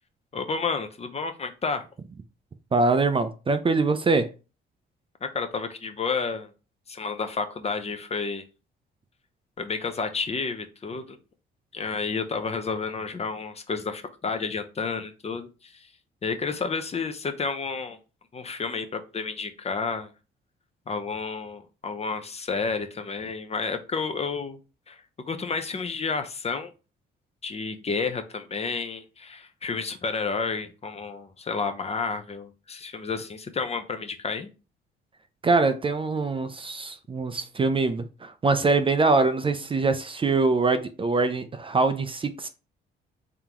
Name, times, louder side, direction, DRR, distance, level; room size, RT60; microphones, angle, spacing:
voice 1, 0.3-1.9 5.2-6.5 6.9-8.4 9.6-11.2 11.7-15.9 16.2-18.0 18.3-20.1 20.9-24.6 24.9-25.0 25.3-26.7 27.4-34.5, left 4 dB, 30° left, 0.6 m, -31 dB
voice 2, 2.7-4.3 35.4-42.5, right 3 dB, 25° right, 0.4 m, -23 dB
3.7 x 3.5 x 2.9 m
cardioid pair, 90°, 20 cm